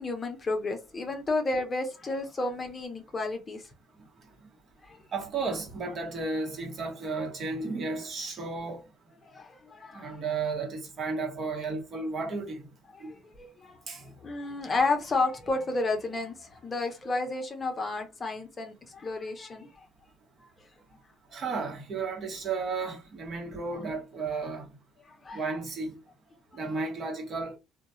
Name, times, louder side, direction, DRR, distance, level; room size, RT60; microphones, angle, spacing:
voice 1, 0.0-3.7 4.8-5.0 9.3-10.2 12.9-19.9 25.0-25.4, left 3 dB, 30° left, 0.7 m, -32 dB
voice 2, 5.1-8.8 9.9-12.6 13.0-13.1 13.9-14.0 21.3-24.7 25.3-26.0 26.5-27.5, right 4 dB, 45° right, 1.1 m, -33 dB
2.4 x 2.1 x 2.9 m
supercardioid pair, 90°, 0 cm